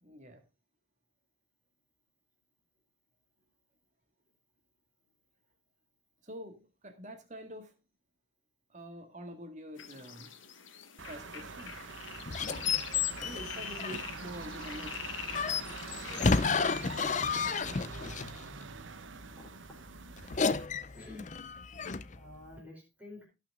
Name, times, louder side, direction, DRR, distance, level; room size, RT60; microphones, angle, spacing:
voice 1, 0.0-0.4 6.2-7.8 8.7-10.3 11.0-11.8 12.3-15.1, equal, 40° right, 6 dB, 1.9 m, -47 dB
sound 1, 9.8-16.3, left 7 dB, 80° left, 1.5 m, -45 dB
sound 2, 11.0-20.7, right 4 dB, 80° right, 1.1 m, -44 dB
sound 3, 12.3-14.2 15.3-18.4 20.2-22.2, left 5 dB, 40° left, 0.6 m, -31 dB
voice 2, 16.8-17.3 20.9-21.3 22.1-23.2, left 2 dB, 5° right, -4 dB, 5.0 m, -49 dB
18.0 x 6.0 x 3.6 m, 0.26 s
head